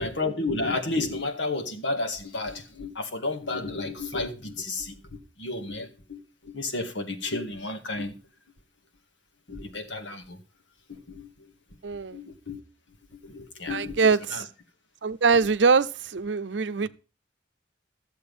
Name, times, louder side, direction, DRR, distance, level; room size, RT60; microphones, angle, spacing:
voice 1, 0.0-8.2 9.5-10.4 10.9-11.3 12.1-12.6 13.2-14.0 14.3-14.4, left 2 dB, 90° left, 1.9 m, -32 dB
voice 2, 11.8-12.2 13.7-14.5 15.0-16.9, right 5 dB, 75° right, 0.6 m, -23 dB
14.0 x 7.4 x 5.4 m
head